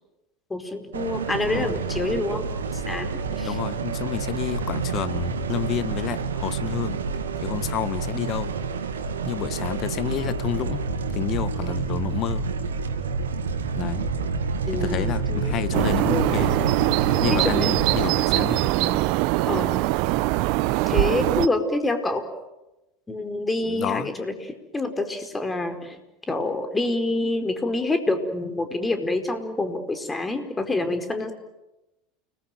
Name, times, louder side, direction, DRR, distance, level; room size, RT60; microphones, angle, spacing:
voice 1, 0.5-3.6 14.7-16.7 17.3-17.7 19.5-19.7 20.9-22.3 23.1-24.3 24.7-26.0 26.3-31.3, left 2 dB, 15° left, 7 dB, 4.7 m, -27 dB
sound 1, 0.9-18.1, right 5 dB, 80° right, 2.4 m, -28 dB
voice 2, 3.4-7.0 7.4-8.5 9.3-10.8 11.1-12.5 13.8-14.1 14.7-16.6 17.2-19.0 23.6-24.1, left 11 dB, 45° left, 15 dB, 1.5 m, -30 dB
sound 2, 15.7-21.5, right 19 dB, 60° right, 0.9 m, -22 dB
30.0 x 21.0 x 9.3 m, 0.98 s
figure-of-eight pair, 75°, 0 cm